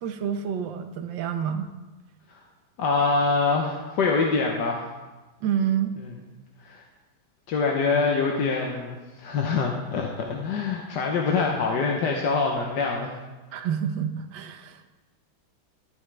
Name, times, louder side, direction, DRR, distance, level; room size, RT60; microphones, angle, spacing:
voice 1, 0.0-1.7 5.4-5.9 13.5-14.9, right 8 dB, 70° right, 7 dB, 1.5 m, -28 dB
voice 2, 2.8-4.9 6.6-6.8 7.5-13.1 13.6-13.7, left 4 dB, 65° left, 1 dB, 1.4 m, -25 dB
13.0 x 11.0 x 3.4 m, 1.2 s
omnidirectional pair, 2.2 m